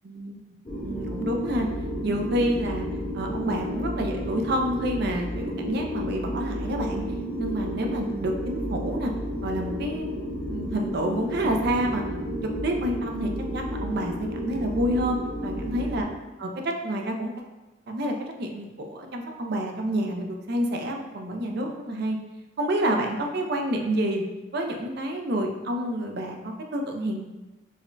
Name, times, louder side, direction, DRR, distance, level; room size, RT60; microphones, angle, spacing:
voice 1, 0.0-0.4 0.8-1.7 2.0-2.9 3.1-7.0 7.4-9.1 9.4-10.1 10.5-12.0 12.6-16.1 16.4-17.3 17.9-22.2 22.6-24.2 24.5-27.2, right 1 dB, 55° right, 2 dB, 0.4 m, -28 dB
sound 1, 0.7-16.0, equal, 25° left, 0.6 m, -32 dB
4.8 x 2.1 x 2.5 m, 1.1 s
head